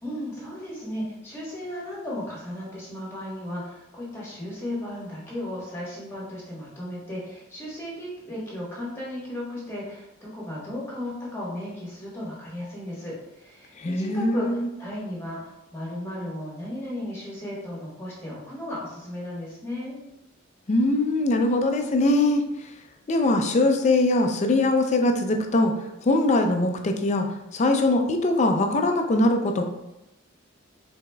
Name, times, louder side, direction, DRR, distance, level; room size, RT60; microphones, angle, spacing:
voice 1, 0.0-20.0, left 1 dB, 10° left, -6 dB, 1.2 m, -35 dB
voice 2, 13.8-14.7 20.7-22.7 23.1-25.7 26.0-29.6, left 2 dB, 35° left, 4 dB, 0.4 m, -22 dB
4.9 x 3.5 x 2.2 m, 0.90 s
head